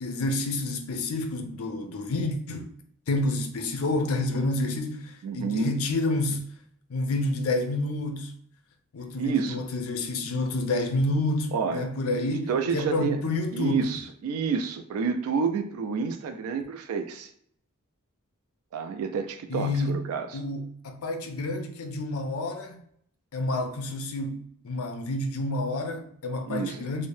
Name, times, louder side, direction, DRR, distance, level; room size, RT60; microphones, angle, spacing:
voice 1, 0.0-2.7 3.1-6.4 6.9-8.3 8.9-13.9 19.5-20.0 20.3-22.8 23.3-27.1, left 2 dB, 80° left, 0.5 m, -29 dB
voice 2, 5.2-5.8 9.2-9.6 11.5-11.9 12.5-13.2 13.5-17.3 18.7-20.4 26.5-26.9, right 5 dB, 85° right, 0.3 m, -29 dB
2.7 x 2.1 x 3.1 m
head